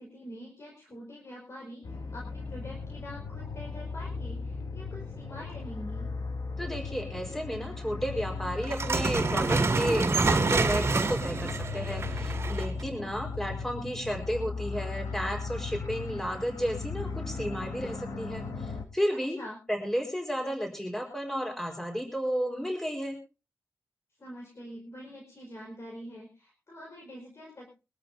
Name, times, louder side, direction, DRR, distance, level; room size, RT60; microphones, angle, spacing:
voice 1, 0.0-6.1 19.1-19.6 24.2-27.7, equal, 50° left, -1 dB, 4.8 m, -45 dB
sound 1, 1.8-18.8, left 4 dB, 80° left, 1.9 m, -37 dB
voice 2, 6.6-19.4 19.7-23.2, equal, 5° left, 2 dB, 4.4 m, -32 dB
sound 2, 8.6-12.8, right 3 dB, 50° right, 2.3 m, -27 dB
23.5 x 13.0 x 2.7 m, 0.31 s
wide cardioid pair, 110°, 6 cm